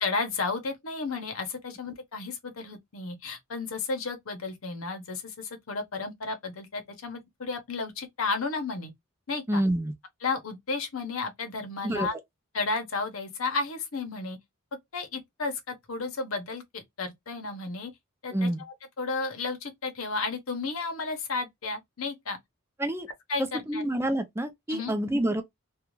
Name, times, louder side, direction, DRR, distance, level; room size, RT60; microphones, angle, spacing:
voice 1, 0.0-8.9 9.3-9.6 10.2-12.1 12.5-14.4 14.9-17.9 18.2-22.4 23.3-23.8 24.7-24.9, left 3 dB, 75° left, 0.8 m, -33 dB
voice 2, 9.5-9.9 11.8-12.1 18.3-18.6 22.8-23.1 23.7-25.4, right 1 dB, 10° right, 0.5 m, -27 dB
2.5 x 2.3 x 3.0 m
head